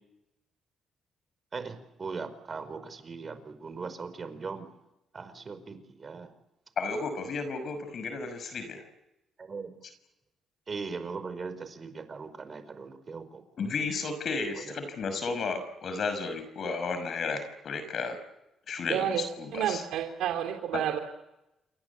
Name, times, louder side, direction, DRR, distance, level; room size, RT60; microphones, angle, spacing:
voice 1, 1.5-4.7 5.1-6.3 9.4-9.7 10.7-13.4 14.6-14.7, right 4 dB, 40° right, 11 dB, 5.0 m, -39 dB
voice 2, 6.8-8.8 13.6-18.2 18.7-19.8 20.7-20.8, left 4 dB, 55° left, 9 dB, 5.9 m, -33 dB
voice 3, 18.9-19.3 19.5-21.0, right 10 dB, 85° right, 3 dB, 2.9 m, -30 dB
28.5 x 24.0 x 8.5 m, 0.91 s
cardioid pair, 90°, 0 cm